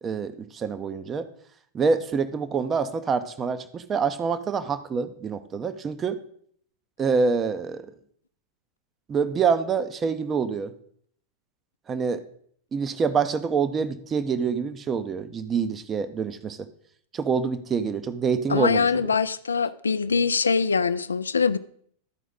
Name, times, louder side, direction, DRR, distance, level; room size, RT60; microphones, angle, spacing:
voice 1, 0.0-1.3 1.7-6.2 7.0-7.9 9.1-10.7 11.9-12.2 12.7-16.7 17.1-19.1, right 5 dB, 25° right, 0.6 m, -26 dB
voice 2, 18.5-21.6, left 5 dB, 75° left, 0.3 m, -23 dB
12.5 x 5.0 x 3.8 m
figure-of-eight pair, 90°, 0 cm